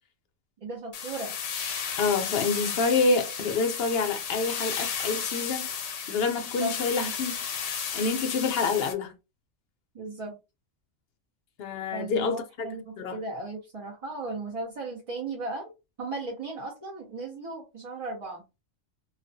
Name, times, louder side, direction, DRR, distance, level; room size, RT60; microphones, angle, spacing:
voice 1, 0.6-1.3 6.6-6.7 9.9-10.4 11.9-15.7 16.0-18.4, right 3 dB, 40° right, 0.5 m, -36 dB
sound 1, 0.9-8.9, left 7 dB, 85° left, 1.0 m, -33 dB
voice 2, 2.0-5.7 6.1-7.4 7.9-9.1 11.6-12.7 13.0-13.2, left 4 dB, 65° left, 0.7 m, -27 dB
2.3 x 2.2 x 2.5 m
omnidirectional pair, 1.3 m